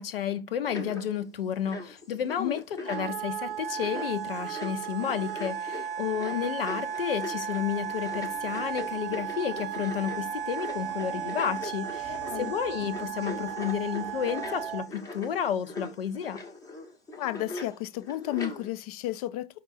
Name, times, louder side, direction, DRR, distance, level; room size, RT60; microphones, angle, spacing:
voice 1, 0.0-16.4, left 9 dB, 70° left, 0.7 m, -31 dB
sound 1, 0.7-18.7, left 2 dB, 10° left, 0.8 m, -41 dB
Wind instrument woodwind instrument, 2.8-14.9, right 10 dB, 65° right, 0.4 m, -35 dB
sound 2, 7.6-14.8, right 3 dB, 15° right, 0.9 m, -45 dB
voice 2, 12.1-12.5 17.2-19.5, left 14 dB, 40° left, 0.5 m, -33 dB
5.2 x 2.5 x 4.1 m
figure-of-eight pair, 105°, 30 cm